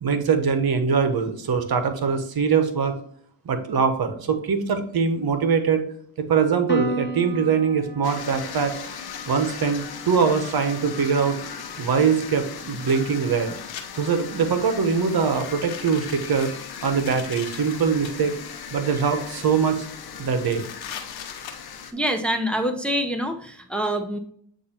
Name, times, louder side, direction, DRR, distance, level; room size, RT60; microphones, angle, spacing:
voice 1, 0.0-3.0 3.4-5.8 6.2-8.7 9.3-11.4 11.8-13.5 13.9-16.5 16.8-18.3 18.7-19.8 20.2-20.7, right 6 dB, 50° right, 8 dB, 1.1 m, -22 dB
Piano, 6.7-13.4, right 1 dB, 25° left, 1.2 m, -37 dB
sound 1, 8.0-21.9, left 7 dB, 55° left, 0.9 m, -38 dB
sound 2, 12.8-13.8 14.3-14.7 15.2-18.1 18.9-19.5 19.8-19.9 20.1-22.2, left 8 dB, 80° left, 1.1 m, -41 dB
voice 2, 21.9-24.2, equal, ahead, 4 dB, 0.9 m, -25 dB
8.3 x 2.8 x 4.4 m, 0.62 s
cardioid pair, 70°, 45 cm